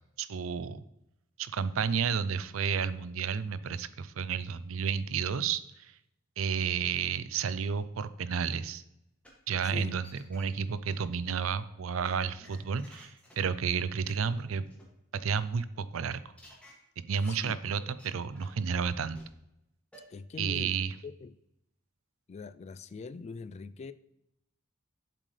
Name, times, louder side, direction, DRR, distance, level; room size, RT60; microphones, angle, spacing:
voice 1, 0.2-0.8 1.4-5.9 6.4-8.8 9.5-14.7 15.1-16.2 17.1-19.2 20.4-20.9, right 6 dB, 85° right, 15 dB, 0.5 m, -31 dB
sound 1, 9.2-9.3 9.8-10.4 10.9-11.0 12.0-13.3 13.6-13.7 14.1-14.2 14.4-14.5 14.7-14.8 16.4-16.7 17.2-17.4 17.8-18.1 18.3-18.6 19.1-19.2 19.9-20.0, equal, 5° left, 2.2 m, -54 dB
voice 2, 9.6-10.0 17.3-17.6 20.1-21.4 22.3-23.9, left 4 dB, 35° left, 14 dB, 0.3 m, -43 dB
7.7 x 7.6 x 3.3 m, 0.84 s
head